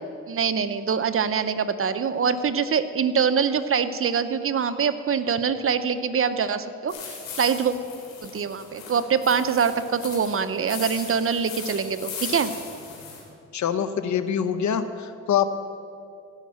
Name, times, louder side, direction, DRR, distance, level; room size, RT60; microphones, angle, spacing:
voice 1, 0.3-7.7 8.2-12.5, right 6 dB, 40° right, 12 dB, 0.7 m, -24 dB
sound 1, 6.9-13.2, left 6 dB, 85° left, 3.0 m, -38 dB
voice 2, 13.5-15.5, left 8 dB, 60° left, 11 dB, 0.8 m, -24 dB
15.5 x 5.7 x 7.4 m, 2.4 s
cardioid pair, 65°, 32 cm